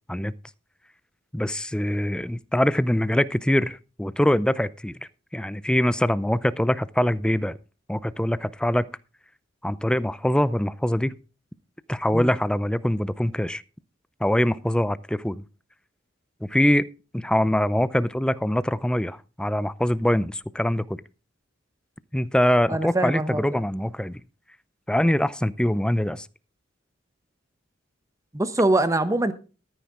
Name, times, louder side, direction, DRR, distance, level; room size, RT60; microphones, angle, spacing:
voice 1, 1.3-5.0 5.3-7.6 7.9-8.9 9.6-11.2 11.9-13.6 14.2-15.4 16.4-16.9 17.1-21.0 22.1-24.2 24.9-26.3, left 1 dB, 5° left, 0.4 m, -23 dB
voice 2, 22.7-23.6 28.3-29.3, right 2 dB, 15° right, 1.0 m, -23 dB
13.5 x 9.3 x 3.7 m
head